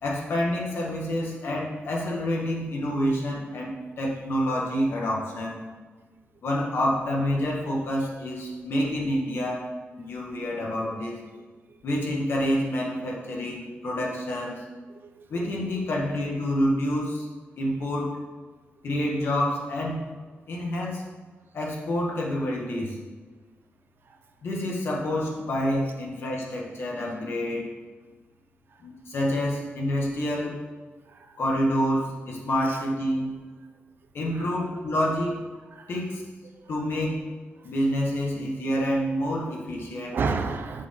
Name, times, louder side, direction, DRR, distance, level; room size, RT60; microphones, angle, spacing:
voice 1, 0.0-5.6 6.4-9.6 10.0-11.2 11.8-14.6 15.3-17.2 17.6-18.2 18.8-20.0 20.5-21.0 21.5-23.0 24.4-27.7 28.8-30.6 31.4-33.4 34.1-35.4 35.9-36.2 36.7-37.2 37.6-40.2, equal, 65° left, -2 dB, 1.7 m, -28 dB
voice 2, 31.1-31.4 32.6-32.8 34.2-34.5 35.7-35.9 36.6-36.7 40.1-40.9, right 4 dB, 55° right, 7 dB, 0.6 m, -31 dB
7.3 x 6.3 x 3.7 m, 1.4 s
wide cardioid pair, 170°, 4 cm